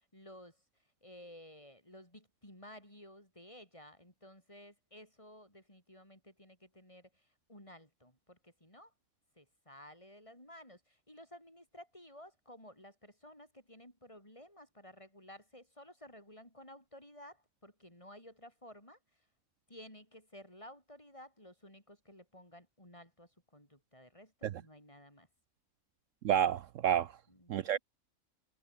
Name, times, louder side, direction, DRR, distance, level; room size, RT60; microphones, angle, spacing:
voice 1, 0.1-0.6 1.0-8.9 9.4-19.0 19.7-25.3 27.3-27.8, left 1 dB, 20° left, 7.9 m, -55 dB
voice 2, 26.2-27.1 27.5-27.8, right 10 dB, 70° right, 1.0 m, -29 dB
omnidirectional pair, 1.5 m